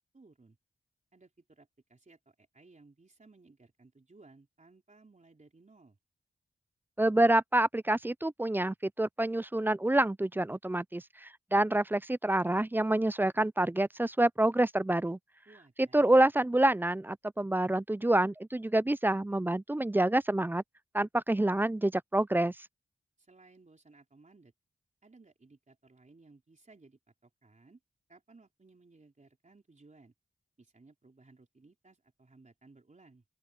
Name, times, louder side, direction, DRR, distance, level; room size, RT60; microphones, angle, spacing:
voice 1, 0.1-0.6 1.1-6.0 15.5-16.2 23.2-24.5 25.0-27.8 28.1-30.1 30.6-33.2, right 3 dB, 40° right, 3.8 m, -59 dB
voice 2, 7.0-15.2 15.8-20.6 20.9-22.5, right 1 dB, 10° right, 0.4 m, -27 dB
open air
cardioid pair, 55°, 20 cm